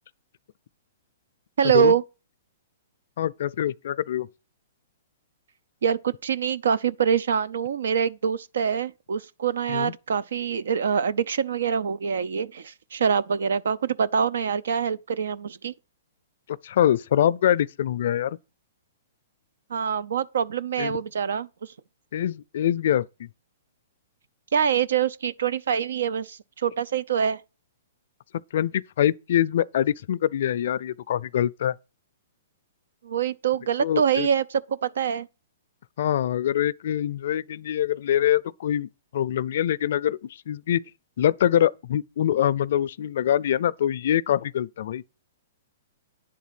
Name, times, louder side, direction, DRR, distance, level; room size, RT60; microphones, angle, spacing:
voice 1, 1.6-2.0 5.8-15.7 19.7-21.7 24.5-27.4 33.0-35.3, right 7 dB, 80° right, 0.6 m, -25 dB
voice 2, 3.2-4.3 9.7-9.9 16.5-18.4 20.8-21.0 22.1-23.3 28.5-31.7 33.8-34.3 36.0-40.2 40.5-40.8 41.2-45.0, left 11 dB, 60° left, 0.4 m, -24 dB
10.0 x 4.1 x 7.5 m
hypercardioid pair, 155°, 0 cm